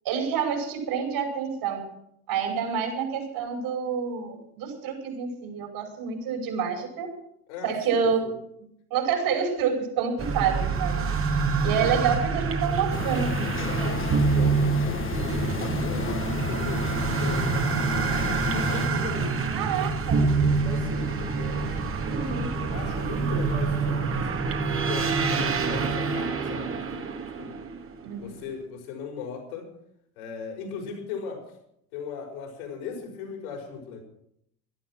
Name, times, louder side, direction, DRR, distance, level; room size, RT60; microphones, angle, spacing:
voice 1, 0.0-1.8 2.3-7.1 7.6-8.4 8.9-11.1 11.6-13.6 19.5-20.3 22.1-22.5 28.0-28.3, right 7 dB, 60° right, 2 dB, 5.5 m, -28 dB
voice 2, 7.5-8.3 11.6-11.9 13.6-19.5 20.2-21.6 22.1-24.3 24.9-27.6 28.2-29.7 30.2-31.4 31.9-34.0, left 6 dB, 75° left, 2 dB, 5.5 m, -38 dB
sound 1, 10.2-28.1, right 4 dB, 30° right, 1.9 m, -26 dB
sound 2, 12.9-18.9, left 6 dB, 30° left, 1.3 m, -33 dB
17.0 x 11.5 x 6.1 m, 0.72 s
hypercardioid pair, 75°, 43 cm